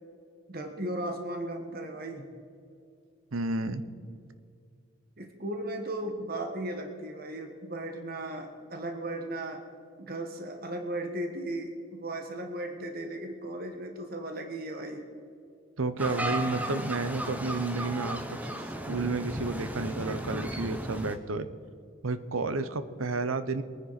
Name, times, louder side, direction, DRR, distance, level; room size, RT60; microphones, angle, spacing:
voice 1, 0.5-2.3 5.2-9.6 10.0-15.0, right 1 dB, 45° right, 4 dB, 1.3 m, -36 dB
voice 2, 3.3-3.8 15.8-18.2 18.6-21.5 22.0-23.6, right 3 dB, 90° right, 12 dB, 0.9 m, -31 dB
sound 1, 16.0-21.2, right 1 dB, 10° right, 0.9 m, -35 dB
22.5 x 9.9 x 4.1 m, 2.4 s
head